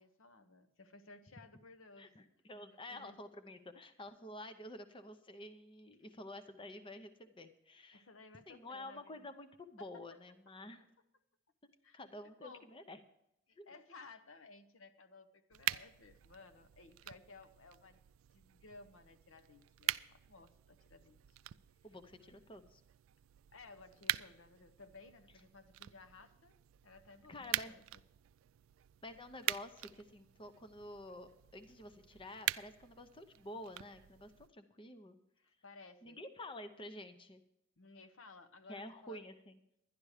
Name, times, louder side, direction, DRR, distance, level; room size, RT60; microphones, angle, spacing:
voice 1, 0.0-2.1 2.9-3.2 7.9-9.3 9.8-9.9 11.8-12.0 12.4-12.7 13.5-18.0 18.3-21.4 22.2-22.4 23.5-26.6 26.8-28.0 35.4-36.2 37.8-39.3, left 3 dB, 75° left, 10 dB, 0.9 m, -57 dB
voice 2, 2.0-8.1 8.5-10.8 11.9-13.0 13.6-13.7 21.8-22.8 27.3-27.7 29.0-35.2 36.0-37.4 38.7-39.6, left 1 dB, 25° left, 9 dB, 0.7 m, -50 dB
sound 1, 15.5-34.5, right 14 dB, 75° right, 0.3 m, -44 dB
11.0 x 11.0 x 4.9 m, 0.81 s
head